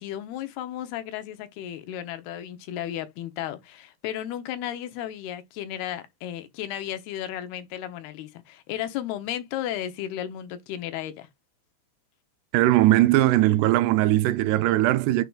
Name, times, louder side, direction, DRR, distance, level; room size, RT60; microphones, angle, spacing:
voice 1, 0.0-11.3, left 11 dB, 80° left, 2.8 m, -34 dB
voice 2, 12.5-15.3, right 15 dB, 85° right, 2.7 m, -20 dB
9.2 x 4.8 x 2.3 m
omnidirectional pair, 4.7 m